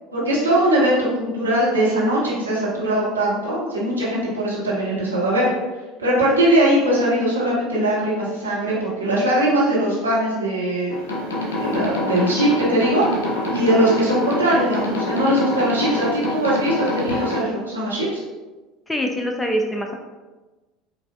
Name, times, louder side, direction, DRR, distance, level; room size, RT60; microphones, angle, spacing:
voice 1, 0.1-5.5 6.0-10.9 11.6-18.1, right 1 dB, 80° right, -7 dB, 1.0 m, -20 dB
sound 1, 10.9-17.4, left 1 dB, 70° left, 0.6 m, -26 dB
voice 2, 18.9-19.9, equal, 10° left, 2 dB, 0.4 m, -24 dB
4.8 x 2.3 x 2.3 m, 1.2 s
figure-of-eight pair, 70°, 0 cm